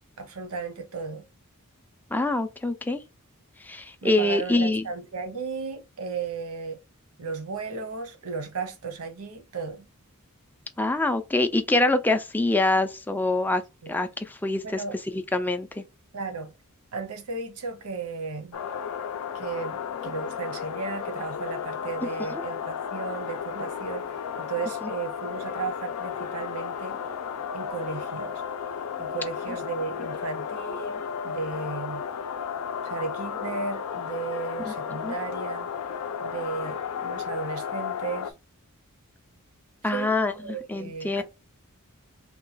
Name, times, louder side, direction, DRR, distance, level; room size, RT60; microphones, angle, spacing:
voice 1, 0.2-1.3 4.0-6.8 7.2-9.9 13.8-14.0 14.6-15.0 16.1-16.5 16.9-18.6 19.3-27.0 27.5-28.4 29.0-32.0 32.8-35.7 36.2-38.3 39.9-40.1 40.4-41.2, right 4 dB, 80° right, 0.8 m, -35 dB
voice 2, 2.1-3.0 3.6-4.8 10.8-13.6 13.9-15.8 22.3-22.4 24.8-24.9 34.7-34.8 35.0-35.1 39.8-41.2, left 2 dB, 10° left, 0.3 m, -25 dB
sound 1, 18.5-38.3, left 7 dB, 85° left, 0.4 m, -33 dB
3.0 x 2.2 x 3.9 m
head